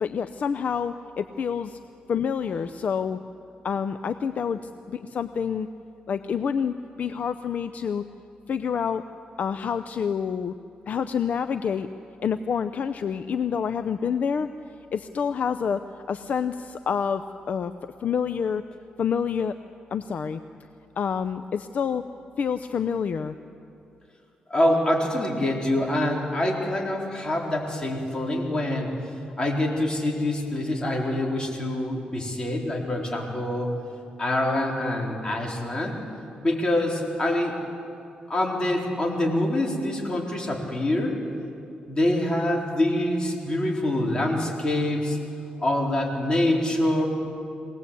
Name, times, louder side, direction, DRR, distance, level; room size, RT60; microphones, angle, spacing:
voice 1, 0.0-1.8 2.1-3.2 3.6-4.6 4.9-5.7 6.1-8.0 8.5-9.0 9.4-10.5 10.9-11.9 12.2-14.5 14.9-17.7 18.0-18.6 19.0-19.5 19.9-20.4 21.0-22.0 22.4-23.4, left 7 dB, 60° left, 10 dB, 0.6 m, -27 dB
voice 2, 24.5-28.9 29.4-33.8 34.2-36.0 36.4-37.6 38.3-41.1 41.9-45.2 45.6-47.0, left 1 dB, 30° left, -1 dB, 4.1 m, -25 dB
23.0 x 18.5 x 8.4 m, 2.6 s
cardioid pair, 100°, 3 cm